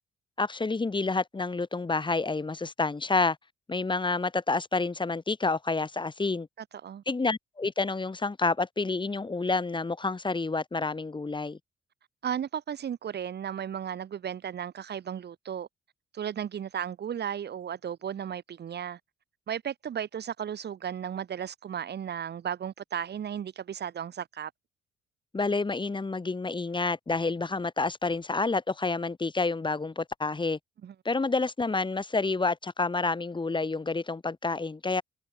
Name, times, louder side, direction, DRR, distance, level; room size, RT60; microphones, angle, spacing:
voice 1, 0.4-3.4 3.7-6.5 7.1-11.6 25.3-30.6 31.1-35.0, left 3 dB, 25° left, 5.3 m, -29 dB
voice 2, 12.2-15.7 16.1-19.0 19.5-24.5 30.8-30.9, right 9 dB, 55° right, 2.8 m, -35 dB
cardioid pair, 90°, 20 cm